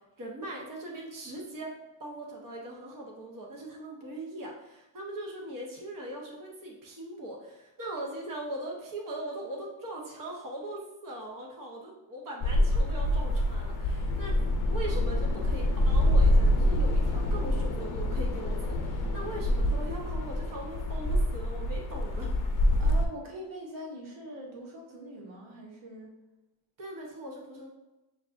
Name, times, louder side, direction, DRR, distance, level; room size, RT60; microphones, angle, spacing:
voice 1, 0.2-1.7 2.0-14.3 14.6-22.3 26.8-27.7, right 1 dB, 40° right, -2 dB, 1.2 m, -40 dB
sound 1, 12.4-23.1, left 1 dB, 40° left, 0.7 m, -26 dB
voice 2, 22.8-26.1, equal, 75° right, -2 dB, 1.3 m, -43 dB
7.0 x 2.5 x 2.6 m, 1.0 s
cardioid pair, 90°, 49 cm